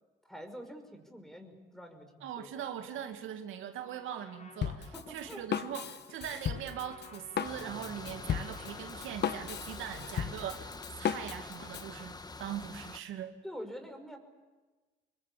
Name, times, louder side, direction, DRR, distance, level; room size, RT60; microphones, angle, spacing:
voice 1, 0.3-2.5 4.9-5.4 13.4-14.2, equal, ahead, 6 dB, 5.5 m, -46 dB
voice 2, 2.2-13.3, right 9 dB, 85° right, 6 dB, 2.3 m, -41 dB
Trumpet, 3.8-12.5, left 3 dB, 35° left, 4.5 m, -57 dB
Drum kit, 4.6-11.9, left 8 dB, 60° left, 1.3 m, -36 dB
sound 1, 7.4-13.0, left 3 dB, 20° left, 1.5 m, -46 dB
27.0 x 22.0 x 8.6 m, 1.3 s
cardioid pair, 90°, 20 cm